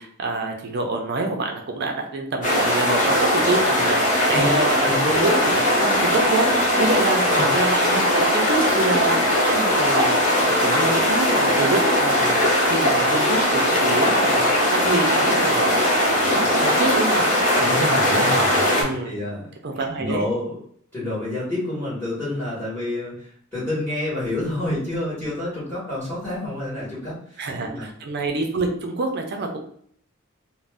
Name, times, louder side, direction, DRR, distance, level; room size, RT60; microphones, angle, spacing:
voice 1, 0.0-6.5 6.8-7.2 7.5-10.2 10.6-17.3 18.7-19.1 19.6-20.3 27.4-29.6, right 2 dB, 50° right, 3 dB, 0.4 m, -26 dB
sound 1, 2.4-18.8, left 1 dB, 35° left, 0.8 m, -19 dB
voice 2, 6.9-7.5 17.5-19.4 19.8-20.6 20.9-27.9, left 1 dB, 10° left, -9 dB, 1.1 m, -29 dB
2.5 x 2.1 x 3.3 m, 0.62 s
head